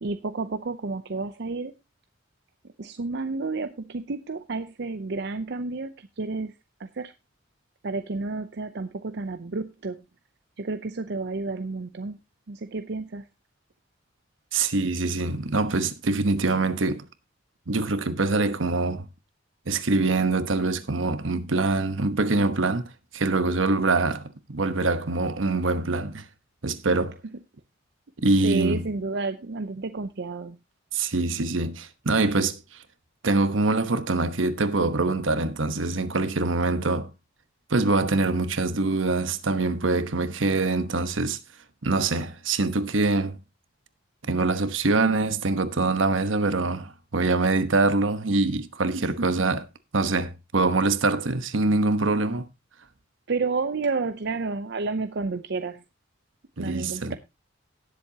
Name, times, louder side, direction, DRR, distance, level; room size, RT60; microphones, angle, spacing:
voice 1, 0.0-1.7 2.8-6.5 6.8-7.1 7.8-10.0 10.6-12.2 12.5-13.3 28.4-30.6 48.9-49.4 53.3-55.8 56.6-57.1, right 3 dB, 60° right, 0.6 m, -31 dB
voice 2, 14.5-17.0 17.7-19.0 19.7-24.2 24.5-26.3 26.6-27.2 28.2-28.8 30.9-32.6 33.2-37.1 37.7-41.4 41.8-43.4 44.3-49.6 49.9-52.5 56.6-57.2, right 3 dB, 80° right, 1.1 m, -24 dB
18.0 x 7.6 x 2.8 m
head